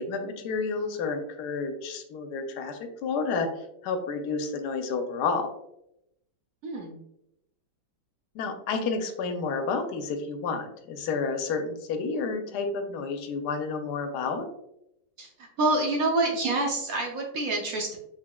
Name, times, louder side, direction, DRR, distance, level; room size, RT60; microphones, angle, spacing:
voice 1, 0.0-3.5 3.8-5.5 8.3-14.5, left 4 dB, 70° left, 5 dB, 1.0 m, -30 dB
voice 2, 6.6-7.0 15.2-15.3 15.6-18.0, right 2 dB, 65° right, 1 dB, 0.8 m, -27 dB
4.8 x 3.5 x 2.2 m, 0.81 s
omnidirectional pair, 2.1 m